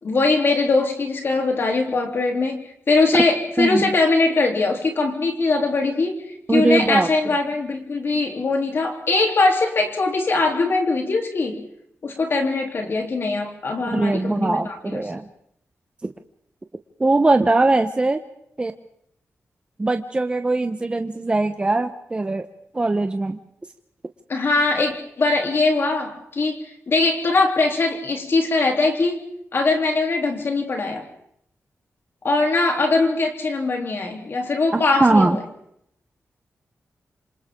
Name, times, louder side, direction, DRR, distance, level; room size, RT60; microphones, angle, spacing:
voice 1, 0.0-11.6 12.0-15.0 24.3-29.2 29.5-31.0 32.2-35.4, left 3 dB, 50° left, 2 dB, 3.3 m, -21 dB
voice 2, 3.6-3.9 6.5-7.3 13.9-15.2 17.0-18.2 18.6-18.7 19.8-22.5 22.7-23.4 34.7-35.4, right 2 dB, 20° right, 7 dB, 0.9 m, -20 dB
27.0 x 27.0 x 3.8 m, 0.71 s
wide cardioid pair, 135°, 5 cm